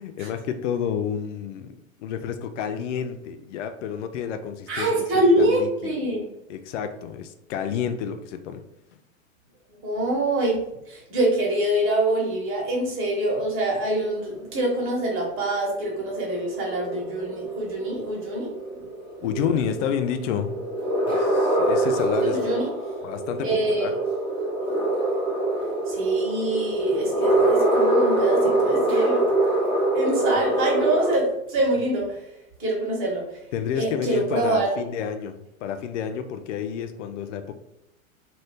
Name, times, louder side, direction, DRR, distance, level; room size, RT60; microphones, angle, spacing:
voice 1, 0.0-5.0 5.4-5.9 6.5-8.6 19.2-20.6 21.1-22.4 23.0-24.0 33.5-37.5, left 8 dB, 60° left, 9 dB, 0.5 m, -30 dB
voice 2, 4.7-6.2 9.8-10.6 10.9-18.5 19.2-19.3 22.3-22.7 23.4-23.9 25.9-29.3 29.9-32.3 32.6-33.4 33.7-34.7, right 1 dB, 30° right, -2 dB, 1.3 m, -25 dB
sound 1, 13.8-31.1, right 1 dB, 15° left, 1.1 m, -25 dB
2.7 x 2.7 x 3.3 m, 0.84 s
hypercardioid pair, 105°, 41 cm